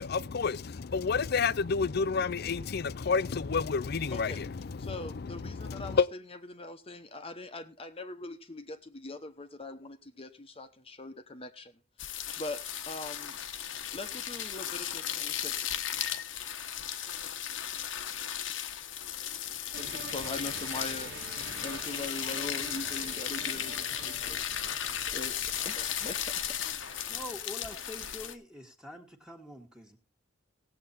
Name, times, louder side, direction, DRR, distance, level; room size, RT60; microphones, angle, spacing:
voice 1, 0.0-4.6 5.5-6.1, left 5 dB, 55° left, 0.5 m, -29 dB
voice 2, 4.1-4.4 4.8-13.4 13.9-16.2 19.7-26.4, left 2 dB, 30° left, 1.0 m, -42 dB
sound 1, 12.0-28.3, left 10 dB, 85° left, 1.1 m, -36 dB
sound 2, 19.7-27.4, right 3 dB, 65° right, 1.7 m, -46 dB
voice 3, 26.6-30.0, left 1 dB, 5° right, 1.6 m, -45 dB
17.5 x 7.8 x 4.2 m
head